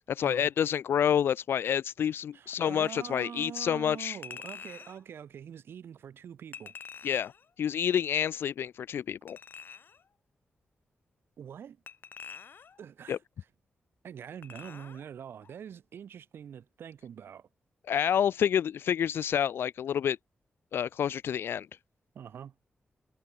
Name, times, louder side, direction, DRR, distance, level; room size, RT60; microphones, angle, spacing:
voice 1, 0.1-4.2 7.0-7.3 7.6-9.4 13.1-13.2 17.9-20.2 20.7-21.7, left 9 dB, 90° left, 0.9 m, -28 dB
voice 2, 2.3-6.7 11.4-11.8 12.8-13.2 14.0-17.5 22.1-22.5, right 8 dB, 85° right, 5.3 m, -44 dB
Chink clink, 4.2-5.0 6.5-7.5 9.3-10.0 11.9-12.8 14.4-15.1 15.4-15.6, left 6 dB, 65° left, 3.3 m, -46 dB
cardioid pair, 85°, 4 cm